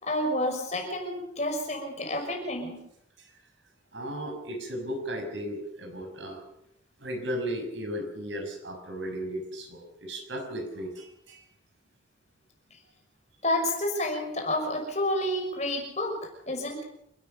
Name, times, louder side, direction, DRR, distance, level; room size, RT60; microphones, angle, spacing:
voice 1, 0.0-2.8 13.4-16.2 16.5-16.8, left 1 dB, 35° left, 2 dB, 5.9 m, -29 dB
voice 2, 3.9-6.4 7.0-11.4, equal, 70° right, 4 dB, 6.1 m, -35 dB
28.0 x 13.5 x 6.9 m, 0.77 s
head